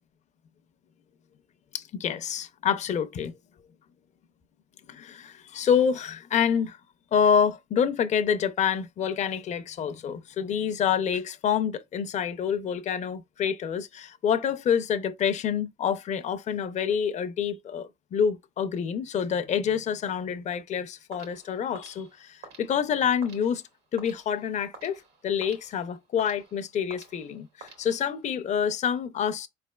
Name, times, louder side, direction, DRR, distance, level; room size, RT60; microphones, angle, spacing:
voice 1, 1.7-3.3 4.9-6.8 7.1-23.6 23.9-29.5, left 7 dB, 45° left, 0.5 m, -27 dB
sound 1, 21.1-28.4, right 4 dB, 80° right, 1.7 m, -51 dB
4.7 x 3.3 x 2.3 m
cardioid pair, 110°, 17 cm